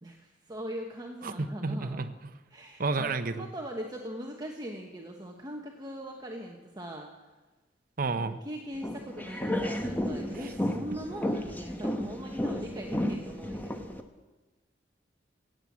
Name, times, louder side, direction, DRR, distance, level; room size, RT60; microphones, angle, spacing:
voice 1, 0.0-2.0 2.5-7.1 8.4-13.9, equal, 20° right, 1 dB, 1.1 m, -40 dB
voice 2, 1.2-2.1 2.8-3.5 8.0-8.4, right 3 dB, 50° right, 10 dB, 0.8 m, -31 dB
sound 1, 8.8-14.0, left 1 dB, 10° left, 0.9 m, -33 dB
16.5 x 7.8 x 8.5 m, 1.2 s
head